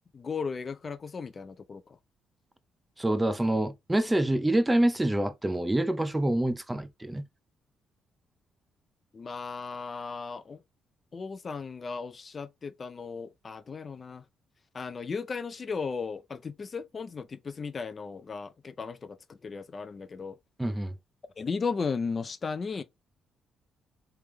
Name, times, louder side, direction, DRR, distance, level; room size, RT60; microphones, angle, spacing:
voice 1, 0.1-1.8 9.1-10.6 11.1-14.2 14.7-20.4 21.4-22.8, left 5 dB, 40° left, 0.4 m, -35 dB
voice 2, 3.0-7.2 20.6-20.9, right 1 dB, 10° right, 0.5 m, -26 dB
3.4 x 3.3 x 3.3 m
cardioid pair, 90°, 0 cm